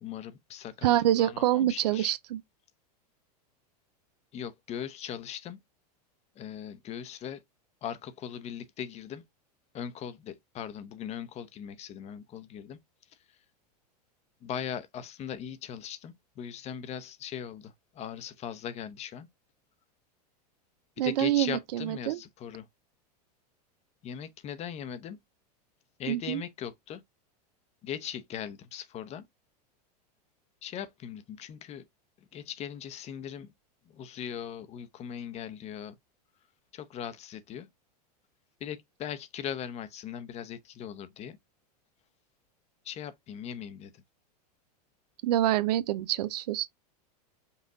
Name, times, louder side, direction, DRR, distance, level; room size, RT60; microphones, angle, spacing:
voice 1, 0.0-0.9 1.2-2.1 4.3-5.6 6.4-7.4 7.8-9.2 9.7-12.8 14.4-19.3 21.0-22.7 24.0-25.2 26.0-27.0 27.8-29.3 30.6-31.8 32.3-33.5 33.9-35.9 36.7-37.7 38.6-41.4 42.8-44.0, left 9 dB, 30° left, 0.7 m, -39 dB
voice 2, 0.8-2.4 21.0-22.2 26.1-26.4 45.2-46.7, right 13 dB, 75° right, 0.6 m, -26 dB
5.5 x 2.4 x 3.8 m
supercardioid pair, 125°, 21 cm